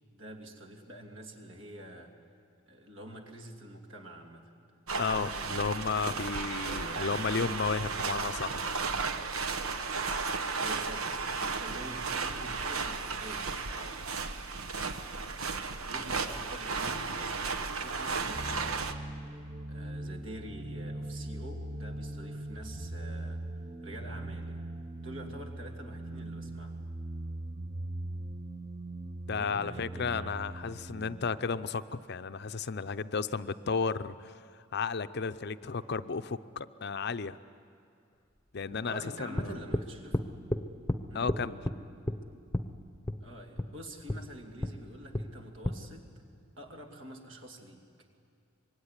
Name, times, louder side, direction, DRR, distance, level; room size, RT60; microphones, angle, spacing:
voice 1, 0.1-2.1 2.7-4.5 5.1-6.3 6.6-7.1 10.2-14.2 15.7-18.9 19.7-24.7 24.9-27.0 29.3-30.4 38.6-40.2 41.1-41.3 43.2-46.1 46.6-47.8, right 1 dB, 65° right, 2 dB, 2.9 m, -47 dB
voice 2, 4.9-8.7 29.3-34.3 34.7-37.4 38.5-39.6 41.1-41.6, left 5 dB, 50° left, 12 dB, 0.6 m, -33 dB
sound 1, 4.9-18.9, right 4 dB, 90° right, 1.2 m, -34 dB
sound 2, 18.3-31.3, right 1 dB, 25° right, 0.8 m, -40 dB
sound 3, 39.4-39.9 40.1-40.6 40.9-41.0 41.3-41.8 42.1-42.2 42.5-42.7 43.1-43.2 43.6-43.7 44.1-44.2 44.6-44.8 45.1-45.3 45.6-45.8, left 1 dB, 15° left, 0.9 m, -30 dB
25.5 x 22.5 x 9.9 m, 2.3 s
head